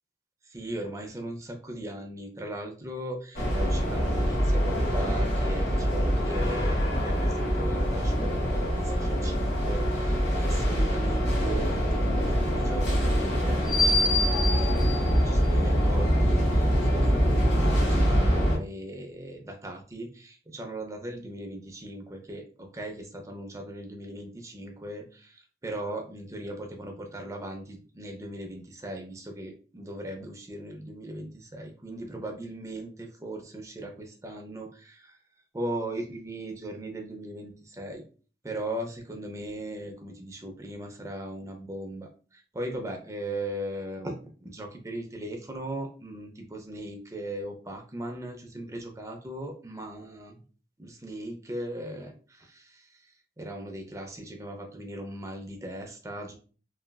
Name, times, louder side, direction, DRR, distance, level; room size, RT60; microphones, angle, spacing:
voice 1, 0.4-35.2 35.5-38.0 38.4-44.2 44.4-50.4 50.8-56.3, right 1 dB, 20° right, 3 dB, 0.5 m, -38 dB
sound 1, 3.3-18.6, equal, 85° left, 1.3 m, -24 dB
3.1 x 2.3 x 2.2 m, 0.38 s
head